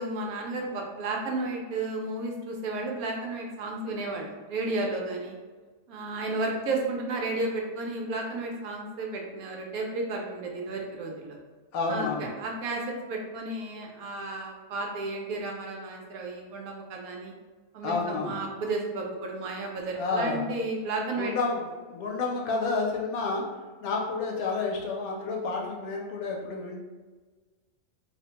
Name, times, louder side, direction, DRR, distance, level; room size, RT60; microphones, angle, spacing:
voice 1, 0.0-5.4 5.9-11.4 11.9-17.3 17.7-21.3, right 2 dB, 85° right, 0 dB, 1.0 m, -33 dB
voice 2, 11.7-12.3 17.8-18.4 20.0-20.5 21.2-23.4 23.8-26.8, left 3 dB, 85° left, -1 dB, 1.1 m, -30 dB
2.7 x 2.1 x 2.8 m, 1.4 s
omnidirectional pair, 1.5 m